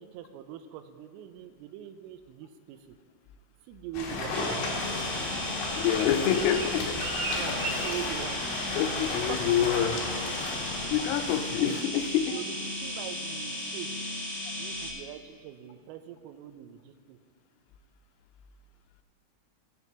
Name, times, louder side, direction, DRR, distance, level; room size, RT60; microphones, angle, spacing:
voice 1, 0.0-2.8 3.7-4.5 7.3-8.4 9.2-9.6 11.6-11.9 12.3-12.5 12.8-14.0 14.6-17.2, right 10 dB, 90° right, 8 dB, 3.2 m, -42 dB
sound 1, 3.9-11.7, left 3 dB, 70° left, 3.8 m, -34 dB
sound 2, 4.3-14.9, left 1 dB, ahead, 0.9 m, -35 dB
Bird, 5.1-8.8 9.0-9.4 9.7-10.0 10.4-10.8 11.2-11.3, right 2 dB, 70° right, 4.3 m, -39 dB
voice 2, 5.8-7.0 7.7-7.8 8.8-10.0 10.9-12.4, left 10 dB, 85° left, 8 dB, 3.1 m, -27 dB
20.0 x 8.0 x 2.9 m, 2.2 s
omnidirectional pair, 5.8 m